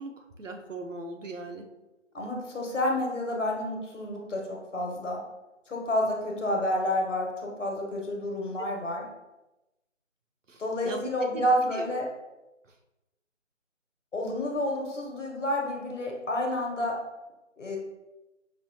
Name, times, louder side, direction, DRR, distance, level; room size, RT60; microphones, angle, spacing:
voice 1, 0.0-1.7 10.5-11.9 12.7-12.8, right 2 dB, 75° right, 4 dB, 0.8 m, -40 dB
voice 2, 2.1-5.2 5.7-9.0 10.6-12.1 14.1-17.0 17.6-17.8, left 1 dB, 70° left, 0 dB, 1.1 m, -29 dB
5.4 x 2.8 x 2.8 m, 0.99 s
figure-of-eight pair, 165°, 38 cm